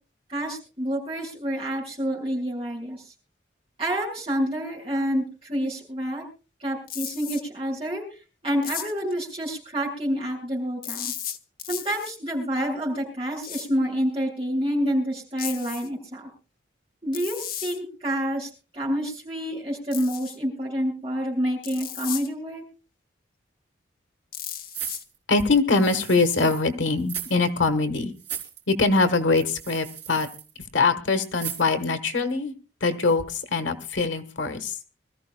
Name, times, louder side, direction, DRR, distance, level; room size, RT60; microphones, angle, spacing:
voice 1, 0.3-3.0 3.8-6.3 6.6-8.0 8.4-11.1 11.7-16.3 17.0-22.6, equal, 30° right, -2 dB, 7.0 m, -28 dB
sound 1, 6.9-7.4 8.6-9.1 10.8-12.2 13.4-13.7 15.4-15.9 17.1-17.8 19.9-20.4 21.6-22.3 24.3-25.0, left 10 dB, 50° left, 0.9 m, -35 dB
sound 2, 24.7-26.7 27.0-27.4 27.6-27.7 28.2-28.6 29.4-30.5 31.3-31.8 32.3-32.4, right 9 dB, 70° right, 3.7 m, -37 dB
voice 2, 25.3-28.1 28.7-30.3 30.7-32.5 32.8-34.8, left 3 dB, 85° left, 9 dB, 1.3 m, -23 dB
25.5 x 14.0 x 2.3 m, 0.34 s
head